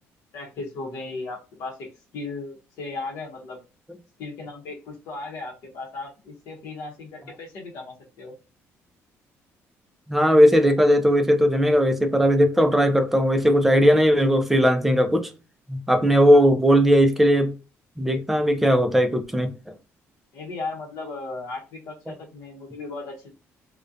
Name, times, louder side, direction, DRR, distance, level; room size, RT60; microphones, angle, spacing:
voice 1, 0.3-3.6 4.2-8.3 16.3-16.5 20.3-23.3, left 3 dB, 75° left, 0.7 m, -36 dB
voice 2, 10.1-15.3 15.7-17.5 18.0-19.7, equal, 5° right, 0.3 m, -18 dB
2.4 x 2.1 x 2.5 m
cardioid pair, 160°, 5 cm